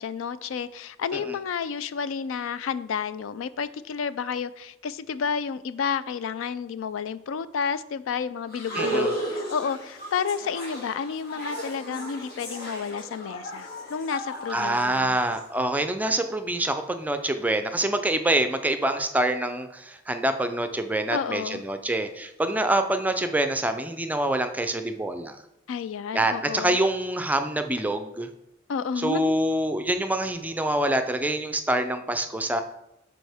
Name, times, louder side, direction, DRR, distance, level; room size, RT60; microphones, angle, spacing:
voice 1, 0.0-15.2 21.1-21.6 25.7-26.8 28.7-29.3, left 6 dB, 80° left, 15 dB, 0.4 m, -31 dB
sound 1, 8.5-15.4, right 1 dB, 50° left, 1.7 m, -34 dB
voice 2, 8.8-9.1 14.5-25.4 26.1-28.3 29.0-32.6, right 1 dB, 10° right, 8 dB, 0.4 m, -26 dB
10.5 x 4.2 x 3.5 m, 0.86 s
head